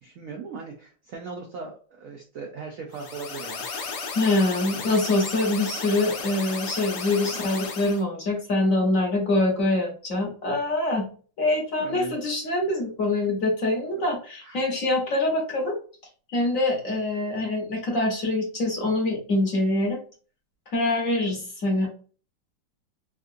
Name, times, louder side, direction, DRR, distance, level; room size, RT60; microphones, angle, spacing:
voice 1, 0.0-3.7 7.3-7.4 11.8-12.2 14.4-14.6, right 5 dB, 75° right, 2 dB, 0.7 m, -38 dB
sound 1, 2.9-8.0, left 4 dB, 90° left, 0.6 m, -34 dB
voice 2, 4.1-11.1 11.4-15.8 16.3-20.0 20.7-21.9, left 2 dB, 55° left, -1 dB, 1.1 m, -24 dB
3.7 x 2.3 x 2.5 m, 0.39 s
omnidirectional pair, 2.0 m